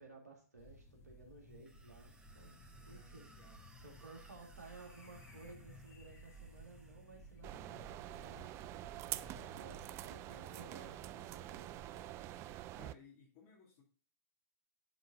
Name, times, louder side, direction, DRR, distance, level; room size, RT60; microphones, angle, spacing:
voice 1, 0.0-2.5 2.9-3.3 3.8-8.5 9.0-12.1, right 3 dB, 85° right, 1 dB, 2.2 m, -57 dB
sound 1, 0.6-12.6, right 1 dB, 30° left, 1.5 m, -57 dB
sound 2, 1.5-7.4, right 2 dB, 10° right, 1.5 m, -65 dB
voice 2, 2.7-3.6 3.9-4.2 7.4-7.5 10.2-11.0 12.7-13.8, left 5 dB, 50° left, -4 dB, 2.2 m, -63 dB
sound 3, 7.4-12.9, right 14 dB, 30° right, 0.4 m, -46 dB
10.5 x 3.9 x 3.7 m, 0.42 s
figure-of-eight pair, 105°, 9 cm